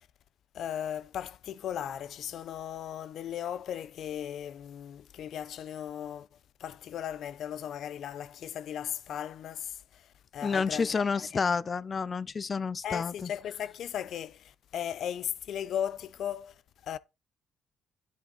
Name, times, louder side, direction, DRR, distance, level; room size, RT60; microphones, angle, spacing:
voice 1, 0.5-6.3 6.6-11.4 12.8-17.0, left 9 dB, 70° left, 0.8 m, -37 dB
voice 2, 10.4-13.3, left 5 dB, 35° left, 0.8 m, -30 dB
10.5 x 8.0 x 4.1 m
cardioid pair, 90°, 0 cm